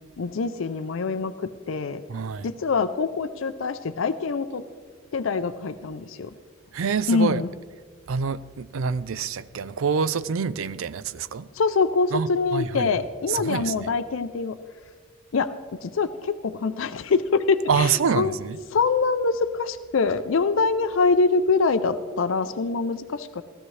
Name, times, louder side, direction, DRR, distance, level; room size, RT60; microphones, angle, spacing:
voice 1, 0.2-2.0 2.4-4.6 5.1-6.3 7.1-7.5 11.6-14.6 15.3-15.5 15.8-17.9 18.2-18.3 18.7-23.4, left 4 dB, 75° left, 0.5 m, -24 dB
voice 2, 2.1-2.5 6.7-7.4 8.1-11.5 12.1-12.9 13.3-13.9 17.7-18.6, right 6 dB, 85° right, 0.4 m, -26 dB
16.0 x 13.5 x 3.2 m
head